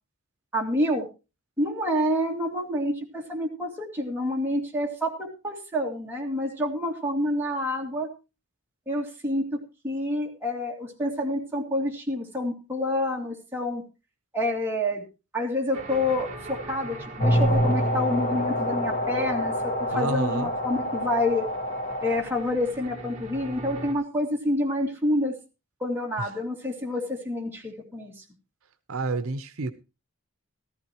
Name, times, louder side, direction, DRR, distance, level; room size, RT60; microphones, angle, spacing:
voice 1, 0.5-1.1 1.6-8.1 8.9-9.6 9.8-13.8 14.3-15.0 15.3-21.5 22.0-25.4 25.8-28.1, left 1 dB, 10° right, -2 dB, 2.4 m, -28 dB
sound 1, 15.7-23.9, right 1 dB, 30° right, 2.0 m, -42 dB
sound 2, 17.2-22.2, equal, 35° left, 1.8 m, -26 dB
voice 2, 19.9-20.5 26.2-26.3 28.9-29.7, right 3 dB, 70° right, 11 dB, 0.7 m, -29 dB
14.5 x 14.0 x 3.0 m, 0.30 s
head